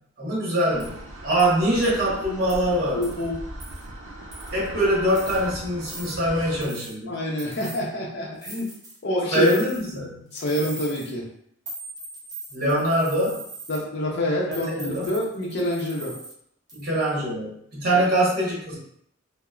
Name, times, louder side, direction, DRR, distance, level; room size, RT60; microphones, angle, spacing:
voice 1, 0.0-3.1 4.5-7.1 9.3-10.3 12.5-13.5 14.5-15.1 16.7-18.7, right 1 dB, 50° right, -6 dB, 1.1 m, -24 dB
sound 1, 0.7-6.6, right 1 dB, 85° right, 0.5 m, -38 dB
sound 2, 0.8-0.9 1.4-1.5 1.8-2.1 2.5-2.6 3.0-3.3 3.6-3.8 4.3-4.7 5.1-5.4 5.8-6.1 6.6-7.0 7.4-7.8 8.4-9.0 9.3-10.0 10.3-11.1 11.7-13.8 14.5-16.3 16.7-17.1, right 2 dB, 20° right, 0.5 m, -40 dB
voice 2, 2.9-3.4 7.1-8.7 9.0-9.5 10.3-11.3 13.7-16.1 17.9-18.0, left 1 dB, 55° left, -3 dB, 0.5 m, -27 dB
2.9 x 2.0 x 2.3 m, 0.68 s
head